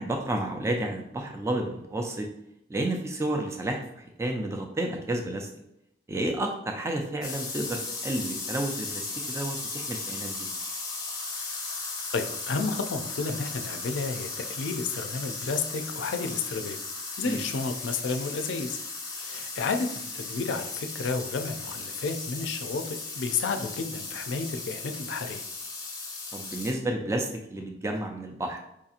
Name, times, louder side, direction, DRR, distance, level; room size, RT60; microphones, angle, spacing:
voice 1, 0.0-2.3 2.7-5.5 6.1-10.5 17.2-17.4 26.3-28.6, right 1 dB, 15° right, 3 dB, 0.3 m, -31 dB
sound 1, 7.2-26.7, left 3 dB, 20° left, 0.7 m, -36 dB
voice 2, 12.1-16.8 17.2-18.8 19.2-25.4, left 4 dB, 75° left, 6 dB, 0.4 m, -31 dB
4.7 x 2.8 x 2.4 m, 0.81 s
head